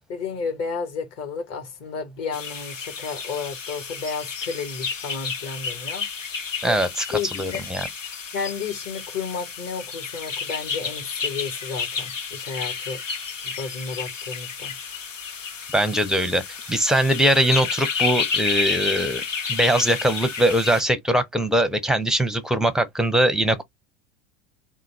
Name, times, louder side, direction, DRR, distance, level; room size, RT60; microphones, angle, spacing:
voice 1, 0.1-6.1 6.6-6.8 7.1-7.6 8.3-13.0 13.4-14.7, left 5 dB, 45° left, 1.6 m, -32 dB
sound 1, 2.3-20.8, left 5 dB, 90° left, 0.7 m, -31 dB
voice 2, 6.6-7.8 15.7-16.4 16.7-19.2 19.5-23.6, right 1 dB, ahead, 0.6 m, -21 dB
3.7 x 2.4 x 3.3 m
figure-of-eight pair, 75°, 37 cm